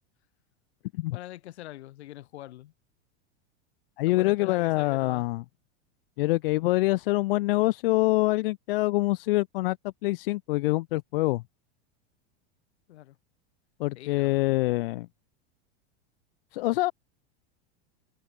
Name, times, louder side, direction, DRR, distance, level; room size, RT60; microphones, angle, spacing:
voice 1, 1.1-2.7 4.0-5.3 12.9-13.2 14.0-14.5, left 15 dB, 75° left, 7.6 m, -44 dB
voice 2, 4.0-5.4 6.2-9.8 10.0-11.4 13.8-15.1 16.5-16.9, left 20 dB, 55° left, 0.8 m, -25 dB
supercardioid pair, 175°, 33 cm